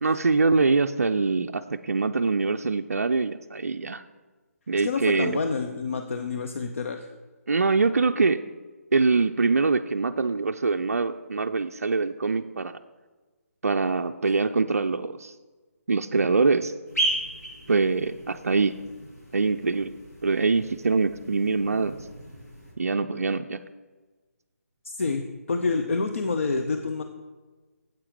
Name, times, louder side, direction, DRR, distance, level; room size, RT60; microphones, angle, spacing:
voice 1, 0.0-4.0 4.7-5.4 7.5-8.4 8.9-12.8 13.6-15.3 15.9-16.7 17.7-18.7 19.3-22.0 22.8-23.6, right 4 dB, 70° right, 7 dB, 0.3 m, -24 dB
voice 2, 4.8-7.1 24.8-27.0, left 4 dB, 55° left, 6 dB, 0.6 m, -28 dB
sound 1, 16.9-22.7, right 2 dB, 85° left, 2.8 m, -35 dB
8.7 x 7.8 x 3.7 m, 1.3 s
figure-of-eight pair, 145°, 8 cm